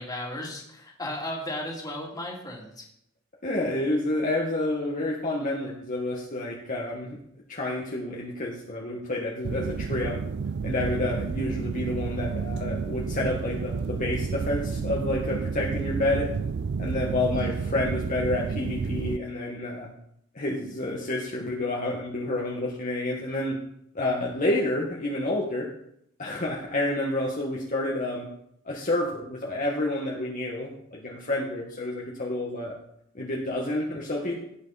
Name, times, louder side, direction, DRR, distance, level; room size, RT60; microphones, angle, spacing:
voice 1, 0.0-2.9 17.4-17.5, left 1 dB, 20° left, -1 dB, 2.7 m, -35 dB
voice 2, 3.4-7.2 7.5-10.2 10.6-16.3 16.8-19.9 20.3-23.5 23.9-25.7 26.2-28.2 28.6-32.7 33.1-34.4, left 1 dB, 40° left, -3 dB, 1.6 m, -29 dB
sound 1, 9.4-19.2, right 5 dB, 55° right, 0.4 m, -31 dB
17.0 x 7.8 x 4.2 m, 0.74 s
head